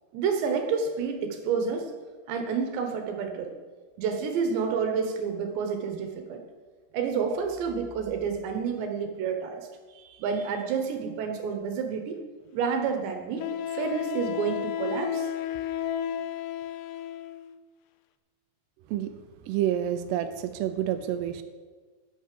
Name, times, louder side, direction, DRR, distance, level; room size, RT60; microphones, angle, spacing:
voice 1, 0.1-1.9 2.3-3.5 4.0-6.4 6.9-9.7 9.9-12.2 12.5-13.5 13.7-15.3, right 6 dB, 70° right, 5 dB, 3.1 m, -29 dB
Wind instrument woodwind instrument, 12.1-12.2 13.4-17.5, left 10 dB, 85° left, 2.6 m, -32 dB
voice 2, 19.5-21.4, right 11 dB, 85° right, 9 dB, 2.3 m, -28 dB
11.0 x 10.5 x 7.6 m, 1.4 s
omnidirectional pair, 5.6 m